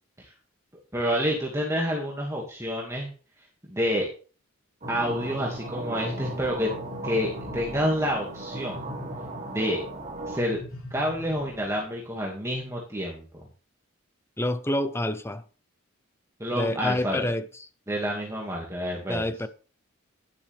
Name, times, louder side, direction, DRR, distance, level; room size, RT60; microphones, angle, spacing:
voice 1, 0.9-3.1 3.7-4.1 4.9-6.7 7.0-8.9 9.4-9.8 10.3-10.6 10.9-13.2 16.4-17.3 17.9-19.3, equal, 15° right, 2.2 m, -28 dB
sound 1, 4.8-11.9, left 1 dB, 85° left, 5.6 m, -42 dB
sound 2, 4.8-10.4, right 2 dB, 35° right, 1.6 m, -37 dB
voice 2, 14.4-15.4 16.5-17.4 19.1-19.5, left 1 dB, 10° left, 0.8 m, -27 dB
11.5 x 10.5 x 3.5 m
head